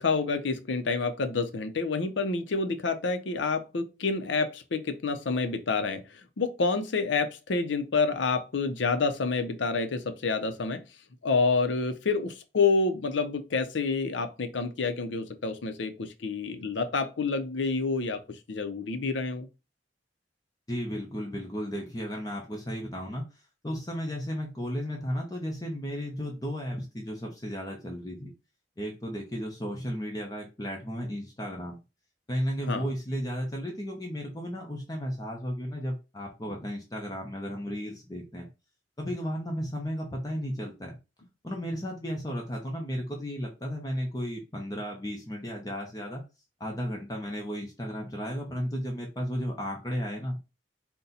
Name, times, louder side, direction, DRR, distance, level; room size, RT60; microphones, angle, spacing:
voice 1, 0.0-6.0 6.4-10.8 11.2-18.2 18.5-19.5 32.7-32.9, left 4 dB, 80° left, 0.6 m, -28 dB
voice 2, 20.7-28.3 28.8-31.8 32.3-38.5 39.0-41.0 41.4-46.2 46.6-50.4, equal, 20° left, 0.8 m, -34 dB
4.1 x 2.2 x 3.9 m
head